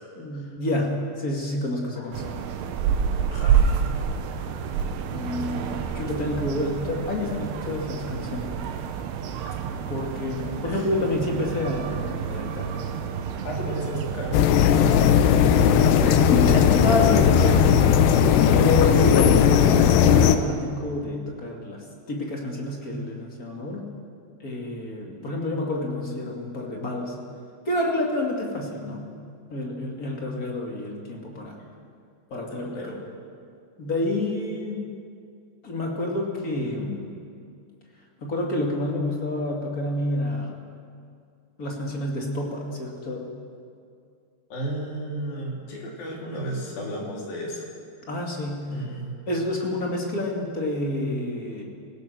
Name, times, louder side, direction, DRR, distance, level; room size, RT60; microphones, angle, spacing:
voice 1, 0.2-2.4 5.1-8.5 9.9-12.7 15.6-17.6 18.5-23.9 24.4-27.2 27.7-29.1 29.5-31.6 32.3-33.0 33.8-34.9 35.6-37.2 38.2-40.5 41.6-43.3 48.1-48.8 49.3-51.6, left 1 dB, 30° left, 0 dB, 2.0 m, -28 dB
sound 1, 2.1-14.4, right 7 dB, 85° right, 3.2 m, -28 dB
voice 2, 3.3-3.9 5.1-5.3 10.6-10.8 13.4-15.2 17.4-17.6 32.3-33.0 44.5-47.6 48.7-49.1, right 1 dB, 60° left, -2 dB, 4.8 m, -33 dB
sound 2, 14.3-20.4, left 8 dB, 85° left, 3.1 m, -17 dB
26.0 x 16.0 x 6.4 m, 2.3 s
omnidirectional pair, 4.7 m